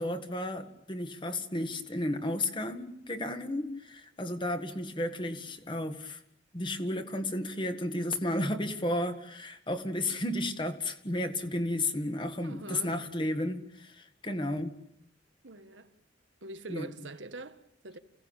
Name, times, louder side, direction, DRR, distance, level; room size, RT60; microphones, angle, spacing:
voice 1, 0.0-6.2 6.5-14.8 16.7-16.9, left 1 dB, 25° left, 1.9 m, -33 dB
voice 2, 12.4-12.9 15.4-15.9 16.4-18.0, right 2 dB, 80° right, 1.6 m, -44 dB
28.5 x 17.5 x 9.0 m
head